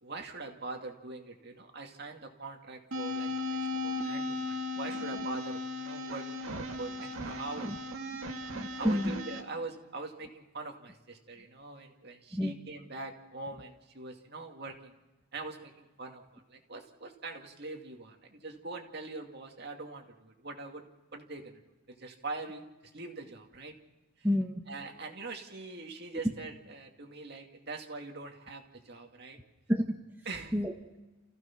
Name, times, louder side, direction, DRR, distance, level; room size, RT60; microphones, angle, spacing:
voice 1, 0.0-6.4 6.8-7.7 8.4-14.9 15.3-20.9 21.1-21.6 21.9-22.7 22.9-23.8 24.2-24.3 24.7-29.4 30.2-30.6, right 3 dB, 45° right, 2 dB, 2.3 m, -43 dB
sound 1, 2.9-9.4, left 2 dB, 70° right, 2.3 m, -36 dB
voice 2, 8.5-9.2 12.3-12.5 24.2-24.6 29.7-29.9 30.5-31.0, equal, 10° right, 2 dB, 1.0 m, -29 dB
29.5 x 15.5 x 5.9 m, 1.1 s
head